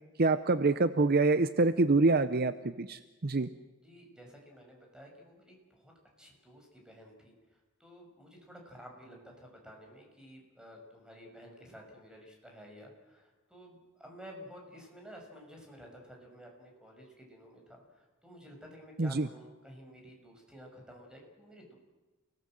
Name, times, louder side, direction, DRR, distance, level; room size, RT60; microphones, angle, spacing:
voice 1, 0.2-3.5 19.0-19.3, right 3 dB, 50° right, 12 dB, 0.7 m, -26 dB
voice 2, 3.8-5.9 6.2-7.3 7.8-21.7, equal, 5° right, 0 dB, 6.2 m, -52 dB
29.5 x 18.5 x 7.8 m, 1.2 s
head